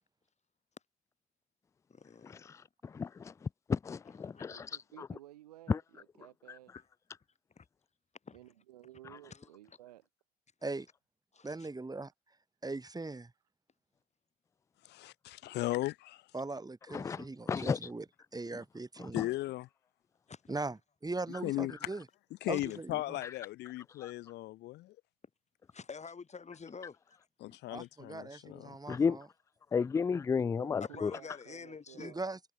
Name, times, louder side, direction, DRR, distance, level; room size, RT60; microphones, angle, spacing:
voice 1, 1.9-2.5 4.1-4.6 6.7-6.9 7.6-7.7 8.2-8.4 9.3-9.5 11.3-11.7 20.3-20.4 22.5-22.6 25.7-27.2 27.5-27.6 30.8-32.1, left 5 dB, 35° left, 4.0 m, -48 dB
voice 2, 2.9-3.3 3.7-4.5 5.7-5.8 16.9-17.8 28.9-29.2 29.7-31.1, left 5 dB, 15° left, 0.3 m, -31 dB
voice 3, 4.5-6.8 8.3-10.1 30.4-32.2, right 14 dB, 75° right, 3.7 m, -55 dB
voice 4, 11.4-12.1 12.6-13.3 16.3-18.1 18.3-19.3 20.5-22.0 22.5-23.2 27.7-29.3 32.0-32.5, right 3 dB, 20° right, 3.6 m, -40 dB
voice 5, 14.8-16.2 19.1-19.7 21.4-21.7 22.4-25.0 27.4-28.8, left 17 dB, 60° left, 0.8 m, -37 dB
figure-of-eight pair, 40°, 20 cm